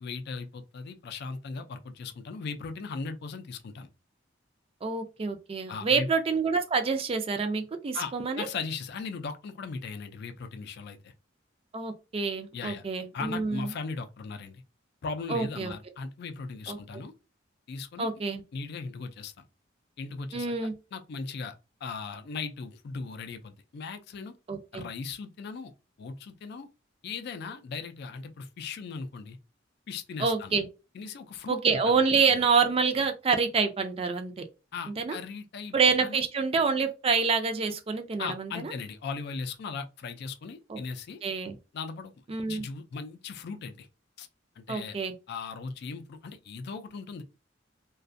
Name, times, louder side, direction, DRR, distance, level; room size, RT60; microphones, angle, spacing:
voice 1, 0.0-3.9 5.7-6.1 7.9-11.1 12.5-12.8 13.1-14.6 15.0-17.1 17.7-18.1 18.5-19.3 20.0-20.5 20.9-21.5 21.8-24.3 24.7-25.7 26.0-26.7 27.0-29.4 29.9-30.5 30.9-31.6 31.9-32.0 32.3-32.4 34.7-36.2 38.2-41.2 41.7-42.1 42.5-43.9 44.2-44.3 44.6-45.0 45.3-47.2, left 4 dB, 55° left, 0.3 m, -38 dB
voice 2, 4.8-8.5 11.7-13.7 15.3-15.7 16.7-16.8 18.0-18.4 20.3-20.7 24.5-24.8 30.2-30.7 31.5-34.4 34.9-35.2 35.7-38.7 40.7-40.8 41.2-41.6 42.3-42.6 44.7-45.1, right 5 dB, 30° right, 0.4 m, -27 dB
2.4 x 2.2 x 2.5 m
head